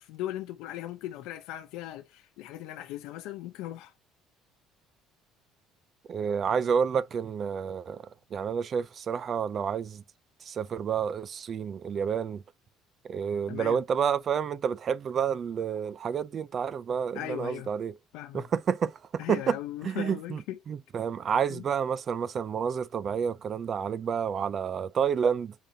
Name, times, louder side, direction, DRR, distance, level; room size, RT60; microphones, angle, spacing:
voice 1, 0.0-3.9 13.5-13.8 17.1-17.7 18.1-18.4 19.2-20.6 21.5-21.6, left 13 dB, 70° left, 0.7 m, -38 dB
voice 2, 6.1-10.0 10.4-12.4 13.0-18.0 18.3-19.6 19.8-25.5, right 7 dB, 30° right, 0.4 m, -29 dB
9.0 x 4.3 x 2.7 m
cardioid pair, 175°, 0 cm